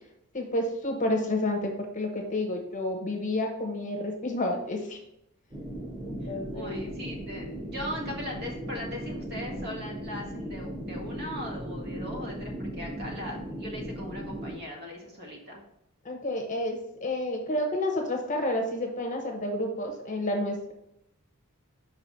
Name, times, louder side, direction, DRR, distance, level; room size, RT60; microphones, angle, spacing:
voice 1, 0.3-5.0 6.0-6.9 16.0-20.7, left 1 dB, 35° left, 2 dB, 0.9 m, -30 dB
sound 1, 5.5-14.6, equal, 15° right, 1.8 m, -37 dB
voice 2, 6.2-15.6, equal, 45° right, -1 dB, 1.6 m, -39 dB
5.6 x 4.1 x 4.5 m, 0.80 s
head